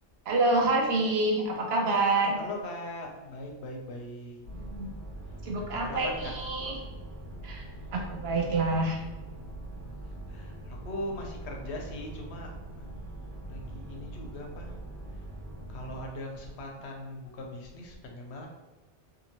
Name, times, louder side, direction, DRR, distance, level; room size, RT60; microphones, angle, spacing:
voice 1, 0.3-2.4 4.5-4.9 5.4-6.8 7.4-9.0, right 2 dB, 65° right, 0 dB, 0.8 m, -27 dB
voice 2, 2.3-4.4 5.7-6.3 8.3-8.5 9.8-9.9 10.3-13.0 13.5-14.8 15.7-18.5, left 1 dB, 75° left, 1 dB, 0.8 m, -40 dB
sound 1, 4.4-16.0, right 1 dB, 45° right, 1.1 m, -42 dB
2.7 x 2.6 x 2.8 m, 1.2 s
omnidirectional pair, 1.2 m